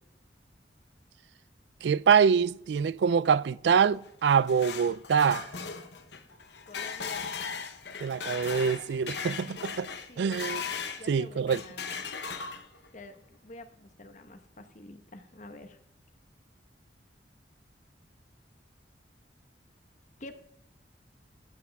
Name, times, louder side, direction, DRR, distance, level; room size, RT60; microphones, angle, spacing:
voice 1, 1.8-5.5 8.0-9.9 10.2-10.6 11.1-11.6, right 6 dB, 75° right, 0.3 m, -25 dB
sound 1, 4.1-11.1 11.5-12.9, left 6 dB, 70° left, 1.0 m, -38 dB
voice 2, 6.6-7.3 10.1-10.5 11.0-12.1 12.9-15.8 20.2-20.4, left 2 dB, 45° left, 1.1 m, -48 dB
14.0 x 9.5 x 3.5 m
head